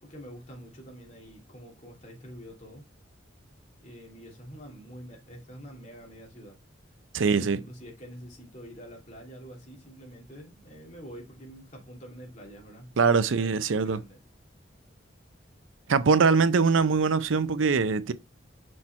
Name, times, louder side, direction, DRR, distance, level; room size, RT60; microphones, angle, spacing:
voice 1, 0.0-2.8 3.8-6.6 7.2-13.5 13.8-14.2, equal, 35° left, 2.7 m, -46 dB
voice 2, 7.1-7.6 13.0-14.0 15.9-18.1, right 5 dB, 85° right, 0.6 m, -22 dB
6.4 x 4.3 x 4.3 m
head